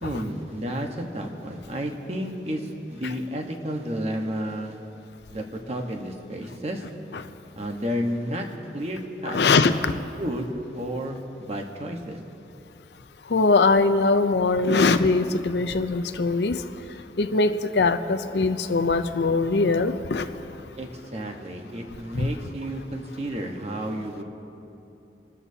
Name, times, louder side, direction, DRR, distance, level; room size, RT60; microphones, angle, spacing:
voice 1, 0.0-4.8 5.3-6.9 7.6-8.5 8.7-9.4 10.2-12.2 20.8-24.2, equal, 35° right, 2 dB, 1.2 m, -31 dB
voice 2, 9.2-9.9 13.3-16.6 17.2-20.3 22.1-22.3, left 3 dB, 80° left, 10 dB, 0.6 m, -22 dB
26.5 x 13.0 x 2.8 m, 2.8 s
head